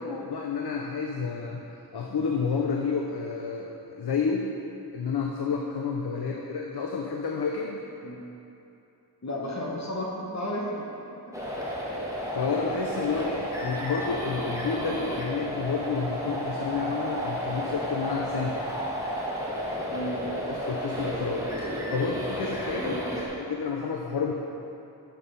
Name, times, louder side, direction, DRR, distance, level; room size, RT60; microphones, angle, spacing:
voice 1, 0.0-1.6 1.9-4.5 4.9-7.8 12.3-18.6 20.5-21.5 21.9-24.3, left 5 dB, 75° left, 0 dB, 0.6 m, -30 dB
voice 2, 9.2-11.4 12.3-12.4 19.9-20.2 22.8-23.0, left 1 dB, 45° left, -3 dB, 1.0 m, -34 dB
sound 1, 11.3-23.3, equal, 10° right, 1.5 m, -32 dB
6.6 x 5.5 x 5.2 m, 2.8 s
wide cardioid pair, 60°, 39 cm